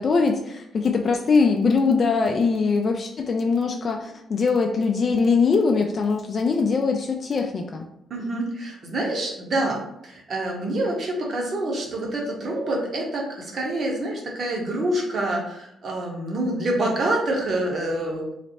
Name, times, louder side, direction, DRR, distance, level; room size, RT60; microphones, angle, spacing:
voice 1, 0.0-7.9, left 4 dB, 45° left, 3 dB, 0.3 m, -22 dB
voice 2, 8.1-18.3, right 1 dB, 50° right, -1 dB, 1.0 m, -27 dB
3.2 x 2.0 x 4.0 m, 0.79 s
cardioid pair, 90°, 0 cm